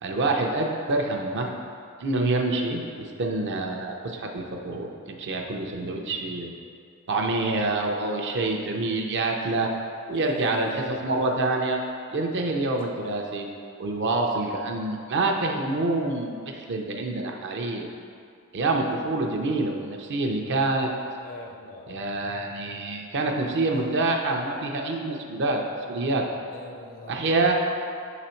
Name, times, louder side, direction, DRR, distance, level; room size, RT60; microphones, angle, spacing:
voice 1, 0.0-1.5 2.0-6.5 7.1-9.7 10.1-11.8 12.1-13.5 13.8-17.9 18.5-20.9 21.9-26.3 27.1-27.5, right 2 dB, 50° right, 2 dB, 0.6 m, -26 dB
voice 2, 10.1-11.3 21.2-22.0 26.5-27.3, left 3 dB, 40° left, 1 dB, 0.5 m, -42 dB
5.4 x 4.0 x 4.4 m, 2.3 s
head